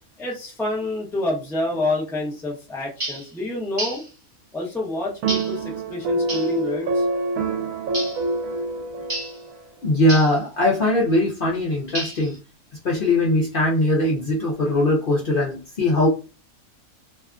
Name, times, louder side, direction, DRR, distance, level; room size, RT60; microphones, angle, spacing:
voice 1, 0.2-4.0 4.5-7.1, left 2 dB, 5° left, -3 dB, 0.3 m, -28 dB
sound 1, 3.0-3.3 3.8-4.1 5.3-5.6 6.3-6.5 7.9-8.2 9.1-9.4 10.1-10.4 11.9-12.4, right 1 dB, 30° right, 0.9 m, -30 dB
sound 2, 5.2-9.7, right 3 dB, 75° right, 1.0 m, -26 dB
voice 2, 9.8-12.3 12.8-16.1, left 1 dB, 55° left, -3 dB, 0.6 m, -20 dB
2.7 x 2.4 x 2.3 m, 0.32 s
omnidirectional pair, 1.5 m